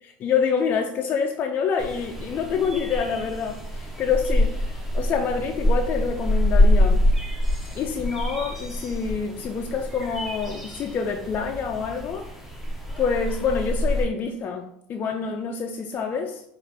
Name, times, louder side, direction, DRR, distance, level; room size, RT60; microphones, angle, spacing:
voice 1, 0.0-7.0 7.7-12.3 13.0-16.4, left 6 dB, 35° left, 3 dB, 0.3 m, -27 dB
sound 1, 1.8-14.0, left 1 dB, 5° right, 0.7 m, -25 dB
4.0 x 2.4 x 3.3 m, 0.76 s
supercardioid pair, 120°, 5 cm